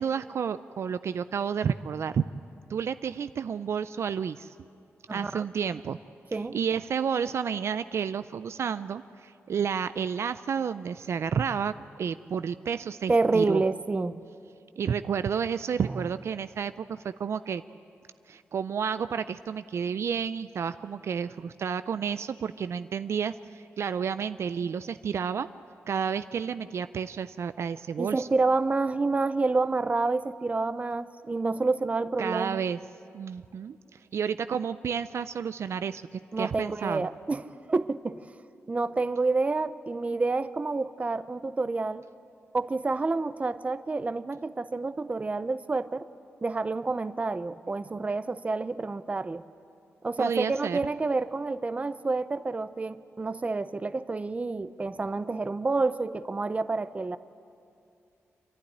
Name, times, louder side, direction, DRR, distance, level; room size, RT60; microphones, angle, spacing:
voice 1, 0.0-2.3 2.7-4.5 5.1-6.0 6.5-13.6 14.8-17.6 18.3-25.5 25.9-28.3 32.2-32.8 33.1-33.8 34.1-37.1 50.2-50.8, right 7 dB, 65° right, 12 dB, 0.4 m, -31 dB
voice 2, 5.1-5.4 6.3-6.6 13.1-14.2 28.0-32.6 36.3-38.3 38.7-42.0 42.5-46.1 46.4-49.4 50.0-57.2, right 3 dB, 25° right, 13 dB, 0.6 m, -28 dB
27.0 x 11.5 x 9.9 m, 2.5 s
cardioid pair, 90°, 5 cm